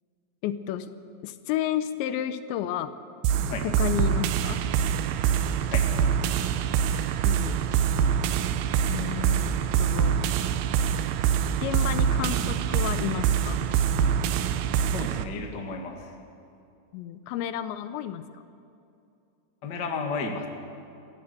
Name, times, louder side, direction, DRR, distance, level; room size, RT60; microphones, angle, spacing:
voice 1, 0.4-0.9 1.2-2.9 3.6-4.6 7.2-7.6 8.9-9.5 9.8-10.3 11.6-13.6 16.9-18.3, left 11 dB, 80° left, 11 dB, 3.0 m, -31 dB
sound 1, 3.2-15.2, right 8 dB, 80° right, 2.2 m, -25 dB
voice 2, 14.9-16.1 19.6-20.5, left 4 dB, 45° left, 2 dB, 1.3 m, -32 dB
28.0 x 14.0 x 6.8 m, 2.6 s
omnidirectional pair, 5.2 m